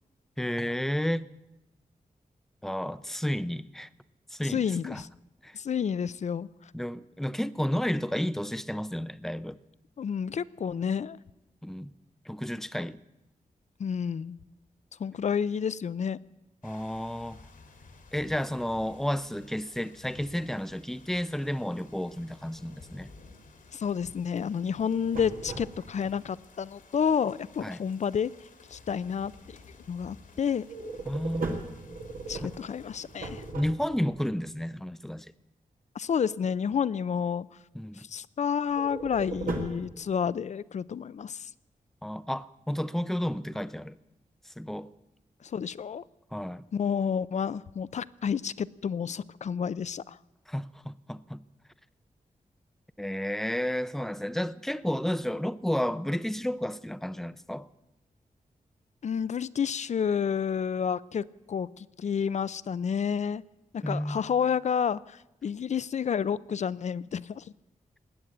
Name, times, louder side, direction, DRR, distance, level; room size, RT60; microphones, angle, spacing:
voice 1, 0.4-1.3 2.6-3.9 4.3-5.0 5.4-5.6 6.7-9.6 11.6-11.9 12.3-13.0 16.6-17.4 18.1-23.1 27.6-27.8 31.1-31.5 32.4-32.5 33.5-35.3 37.7-38.0 42.0-44.0 44.5-44.9 46.3-46.6 50.5-51.4 53.0-57.7 63.8-64.2, equal, 5° left, 0.5 m, -32 dB
voice 2, 4.4-5.1 5.5-6.5 10.0-11.2 13.8-14.4 15.0-16.2 23.7-28.3 28.7-29.6 29.9-30.6 32.3-33.4 36.0-37.5 38.0-41.5 45.4-46.0 46.7-50.2 59.0-63.4 63.7-67.4, left 7 dB, 55° left, 0.4 m, -30 dB
sound 1, 16.6-33.5, left 4 dB, 80° left, 2.3 m, -54 dB
sound 2, 24.8-26.1 30.6-34.2 38.7-39.9, right 3 dB, 85° right, 2.1 m, -37 dB
19.5 x 8.7 x 8.0 m
wide cardioid pair, 115°, 14 cm